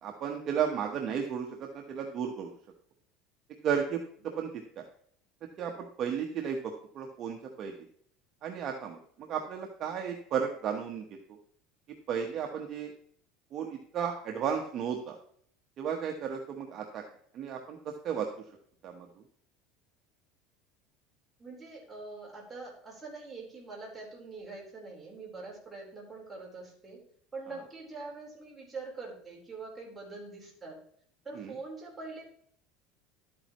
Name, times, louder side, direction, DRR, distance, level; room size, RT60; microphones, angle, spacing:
voice 1, 0.0-2.5 3.6-4.0 4.4-4.5 4.8-4.9 5.6-7.7 8.4-11.0 12.1-12.9 13.5-15.2 15.8-17.0 17.3-18.3 18.8-19.1 31.3-31.5, right 7 dB, 40° right, 2 dB, 1.1 m, -34 dB
voice 2, 21.4-27.0 27.3-30.8 31.2-32.2, right 3 dB, 10° right, -3 dB, 4.1 m, -44 dB
12.0 x 8.8 x 3.1 m, 0.62 s
cardioid pair, 150°, 0 cm